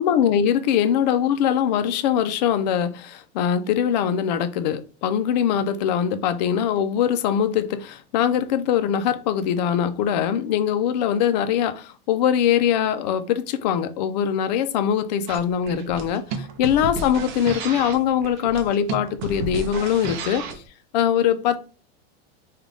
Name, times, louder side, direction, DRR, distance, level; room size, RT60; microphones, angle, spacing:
voice 1, 0.0-20.6 20.9-21.6, left 9 dB, 45° left, 0.4 m, -22 dB
sound 1, 15.3-20.7, right 4 dB, 45° right, 0.6 m, -33 dB
3.7 x 2.3 x 3.4 m
supercardioid pair, 170°, 32 cm